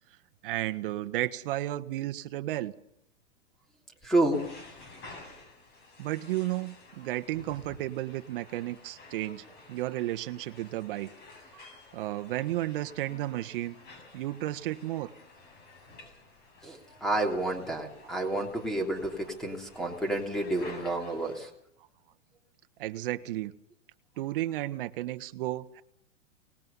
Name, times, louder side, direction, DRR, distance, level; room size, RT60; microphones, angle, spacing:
voice 1, 0.4-2.7 6.0-11.1 11.9-13.8 14.1-15.1 22.8-23.5 24.2-25.8, right 15 dB, 45° right, 10 dB, 1.4 m, -33 dB
voice 2, 4.0-4.4 16.6-21.5, right 2 dB, ahead, 3 dB, 3.2 m, -30 dB
sound 1, 4.3-21.5, left 3 dB, 25° left, 7.8 m, -52 dB
25.0 x 20.0 x 5.6 m, 0.73 s
supercardioid pair, 165°, 37 cm